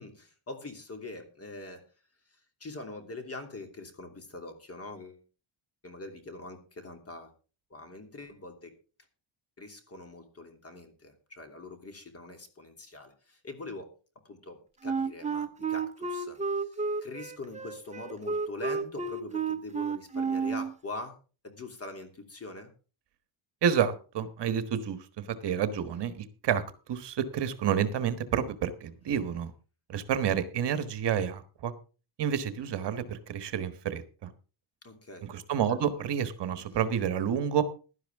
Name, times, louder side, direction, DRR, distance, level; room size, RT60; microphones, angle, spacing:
voice 1, 0.0-1.8 2.3-5.2 5.8-7.3 7.7-8.8 9.6-13.9 14.2-21.2 21.4-22.7 34.8-35.3 35.7-35.8, left 2 dB, 30° left, 7 dB, 2.9 m, -43 dB
Wind instrument woodwind instrument, 14.8-20.7, right 5 dB, 15° right, 0.8 m, -31 dB
voice 2, 23.6-26.6 26.9-29.5 29.9-31.7 32.2-34.3 35.2-37.6, right 8 dB, 55° right, 12 dB, 1.4 m, -29 dB
16.5 x 11.5 x 3.6 m, 0.35 s
cardioid pair, 145°, 49 cm